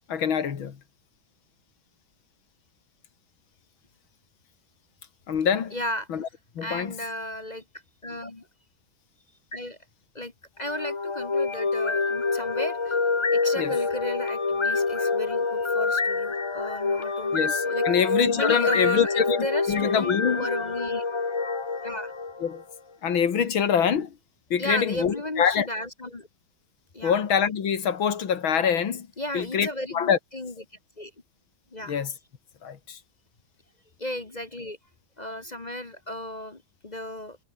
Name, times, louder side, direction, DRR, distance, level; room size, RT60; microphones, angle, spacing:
voice 1, 0.1-0.8 5.3-5.8 6.1-6.3 6.6-6.9 13.6-13.7 17.3-19.4 19.7-20.5 22.4-22.6 23.0-24.2 24.5-25.7 27.0-29.1 29.3-30.2 31.9-32.1 32.6-33.0, left 7 dB, 90° left, 2.7 m, -25 dB
voice 2, 5.7-6.1 6.6-7.6 8.0-8.5 9.5-9.8 10.1-13.0 13.3-17.8 18.3-21.0 21.8-22.1 24.6-26.3 26.9-27.2 29.2-30.5 31.0-31.1 31.7-32.0 34.0-34.8 35.2-37.4, left 1 dB, 25° left, 1.3 m, -34 dB
sound 1, 10.6-22.7, left 4 dB, 50° left, 0.3 m, -26 dB
omnidirectional pair, 2.1 m